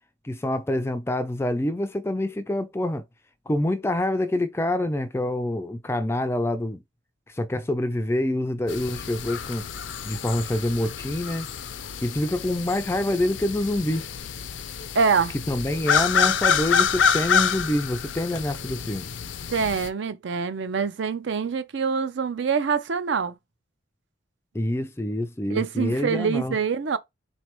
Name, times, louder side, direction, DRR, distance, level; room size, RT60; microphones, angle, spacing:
voice 1, 0.2-3.0 3.5-6.8 7.3-9.6 10.0-11.5 12.0-14.1 15.5-19.1 24.5-26.6, left 1 dB, 15° left, 0.3 m, -26 dB
sound 1, 8.7-19.9, left 6 dB, 70° left, 0.5 m, -27 dB
voice 2, 14.9-15.3 19.5-23.4 25.5-27.0, right 5 dB, 65° right, 0.5 m, -25 dB
3.9 x 3.2 x 3.0 m
head